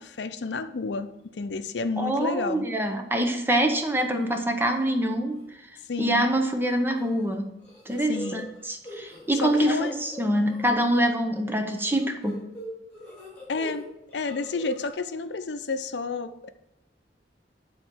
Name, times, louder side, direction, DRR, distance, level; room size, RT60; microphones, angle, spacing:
voice 1, 0.0-2.7 5.9-6.3 8.1-8.5 9.4-9.9 13.5-13.8 14.1-16.5, left 3 dB, 80° left, 10 dB, 0.6 m, -30 dB
voice 2, 2.0-5.6 6.0-7.5 7.9-12.5, right 1 dB, 10° right, 4 dB, 0.7 m, -25 dB
sound 1, 4.0-4.4 4.8-5.1 5.3-5.4 6.6-7.3 7.6-10.7 11.8-13.8 14.1-14.9, equal, 5° left, 3.2 m, -42 dB
8.4 x 3.9 x 6.2 m, 0.89 s
head